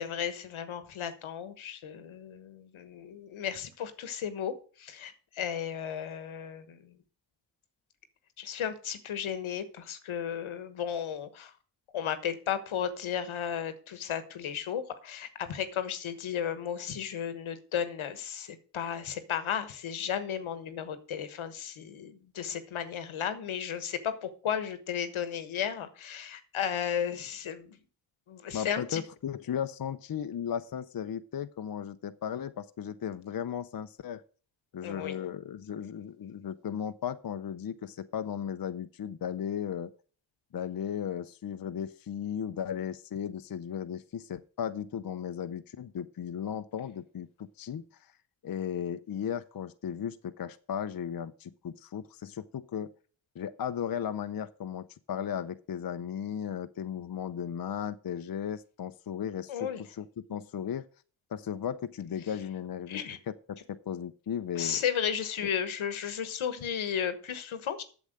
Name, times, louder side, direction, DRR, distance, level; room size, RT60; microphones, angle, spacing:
voice 1, 0.0-7.0 8.4-11.5 11.9-27.8 28.3-29.0 34.8-35.3 59.5-59.8 62.9-63.2 64.5-67.8, left 8 dB, 85° left, 11 dB, 1.3 m, -34 dB
voice 2, 28.5-34.2 34.7-39.9 40.5-47.8 48.4-52.9 53.3-59.7 60.0-60.9 61.3-63.0 63.3-64.8 65.4-65.5, left 8 dB, 45° left, 10 dB, 0.7 m, -36 dB
8.3 x 7.1 x 6.4 m, 0.40 s
cardioid pair, 55°, 47 cm